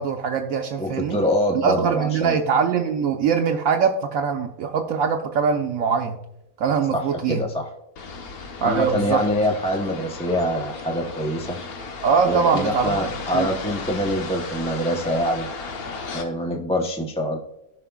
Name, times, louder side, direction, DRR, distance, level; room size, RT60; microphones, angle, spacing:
voice 1, 0.0-1.2 1.5-6.2 6.6-7.4 8.6-9.2 12.0-13.5, right 6 dB, 75° right, 3 dB, 1.0 m, -22 dB
voice 2, 0.8-2.4 6.9-7.7 8.6-11.6 12.3-15.5 16.1-17.4, equal, 5° left, 2 dB, 0.5 m, -25 dB
sound 1, 8.0-16.2, left 4 dB, 80° left, 1.5 m, -35 dB
15.0 x 5.7 x 2.3 m, 0.86 s
omnidirectional pair, 1.5 m